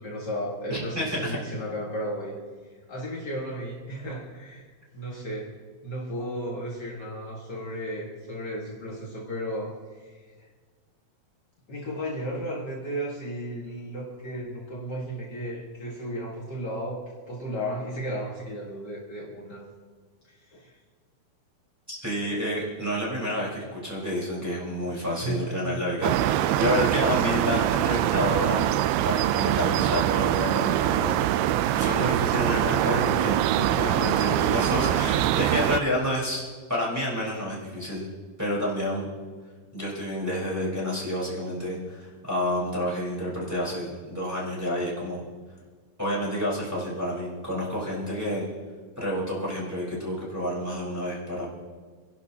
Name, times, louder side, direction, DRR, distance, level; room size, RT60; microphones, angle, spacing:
voice 1, 0.0-2.4 2.7-5.5 5.8-10.5 11.7-19.6 20.2-20.8 24.8-26.2, equal, 75° left, -4 dB, 0.9 m, -34 dB
voice 2, 0.7-1.4 21.9-28.7 29.0-36.4 36.7-38.1 38.4-39.1 39.7-45.2 46.0-48.5 49.0-51.5, left 1 dB, 5° right, -7 dB, 3.7 m, -29 dB
sound 1, 26.0-35.8, right 13 dB, 85° right, 2.5 m, -24 dB
30.0 x 11.5 x 2.8 m, 1.5 s
omnidirectional pair, 4.5 m